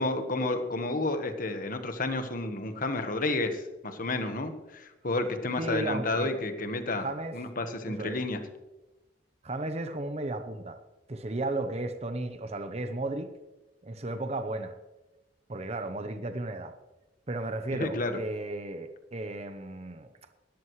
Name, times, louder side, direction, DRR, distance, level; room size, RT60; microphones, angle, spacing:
voice 1, 0.0-7.1 7.3-8.4 17.7-18.2, left 2 dB, 50° left, 7 dB, 1.4 m, -31 dB
voice 2, 5.6-6.3 7.0-7.4 7.9-8.2 9.4-10.8 11.1-13.3 13.8-14.8 15.5-16.7 17.3-20.1, right 2 dB, 35° right, 8 dB, 0.8 m, -34 dB
19.0 x 13.0 x 3.2 m, 1.1 s
head